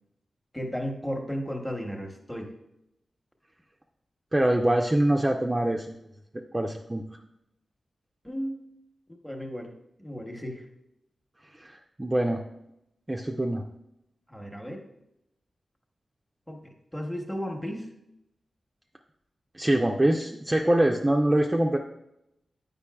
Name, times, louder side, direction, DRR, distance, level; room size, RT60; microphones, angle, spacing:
voice 1, 0.5-2.5 8.2-8.6 9.1-9.7 10.0-10.6 14.3-14.8 16.5-17.9, equal, 5° left, 3 dB, 1.0 m, -34 dB
voice 2, 4.3-5.9 6.5-7.0 11.6-12.4 13.1-13.6 19.5-21.8, right 1 dB, 20° right, 1 dB, 0.5 m, -24 dB
8.4 x 5.3 x 2.3 m, 0.82 s
cardioid pair, 65°, 0 cm